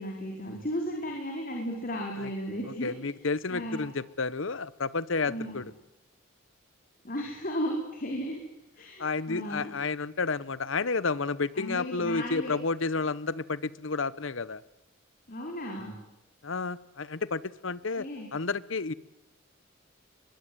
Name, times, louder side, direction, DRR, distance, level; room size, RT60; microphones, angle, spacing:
voice 1, 0.0-2.9 3.5-3.8 5.3-5.6 7.0-8.4 8.8-9.7 11.5-12.5 15.3-16.0 18.0-18.3, equal, 45° left, 0 dB, 4.9 m, -35 dB
voice 2, 2.8-5.7 9.0-14.6 16.4-18.1 18.3-18.9, left 4 dB, 65° left, 18 dB, 0.9 m, -31 dB
24.5 x 22.5 x 9.6 m, 0.91 s
head